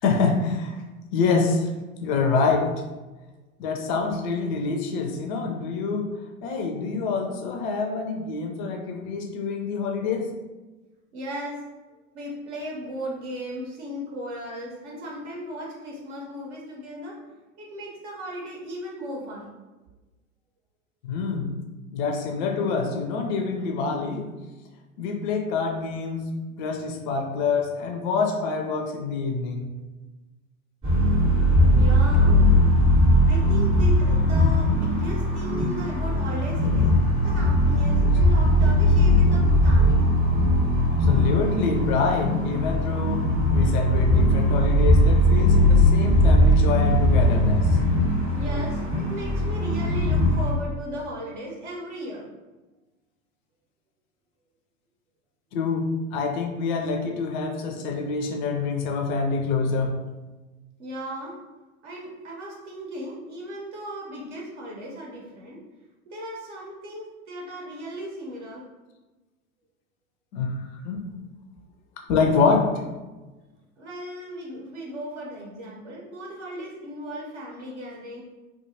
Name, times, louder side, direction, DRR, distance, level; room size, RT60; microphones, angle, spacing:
voice 1, 0.0-0.8 1.1-1.7 2.0-2.7 3.6-6.1 6.4-10.3 21.0-21.6 21.9-24.3 25.0-26.3 26.6-29.7 41.0-43.3 43.5-47.8 55.5-60.0 70.3-71.0 72.1-72.8, left 4 dB, 35° left, 3 dB, 0.4 m, -26 dB
voice 2, 11.1-11.6 12.1-17.2 17.6-19.5 31.5-32.6 33.3-36.9 37.2-40.1 48.3-52.2 60.8-61.4 61.8-65.6 66.1-68.6 73.8-78.2, equal, 55° right, -3 dB, 0.8 m, -36 dB
sound 1, 30.8-50.5, left 1 dB, 15° right, 0.7 m, -19 dB
2.4 x 2.3 x 2.7 m, 1.2 s
figure-of-eight pair, 90°, 41 cm